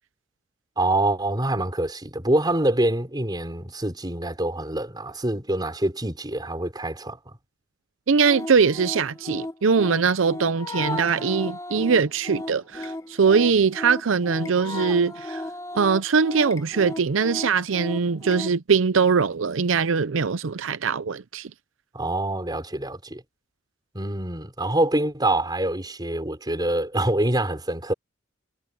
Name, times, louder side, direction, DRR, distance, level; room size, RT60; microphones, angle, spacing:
voice 1, 0.8-7.2 21.9-23.2 23.9-27.9, right 1 dB, 20° right, 4.6 m, -25 dB
voice 2, 8.1-15.4 15.7-21.5, right 5 dB, 90° right, 0.6 m, -22 dB
sound 1, 8.2-18.5, left 1 dB, 15° left, 1.3 m, -35 dB
head